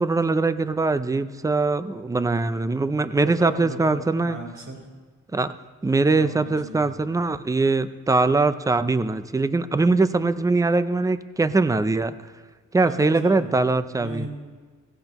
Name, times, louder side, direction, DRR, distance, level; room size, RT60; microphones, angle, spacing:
voice 1, 0.0-4.4 5.3-5.5 5.8-12.1 12.7-14.3, right 3 dB, 10° right, 13 dB, 0.4 m, -22 dB
voice 2, 3.2-4.8 6.1-6.9 12.8-13.6 14.0-14.3, right 1 dB, 45° right, -1 dB, 4.4 m, -37 dB
16.5 x 16.0 x 3.0 m, 1.5 s
wide cardioid pair, 115°, 31 cm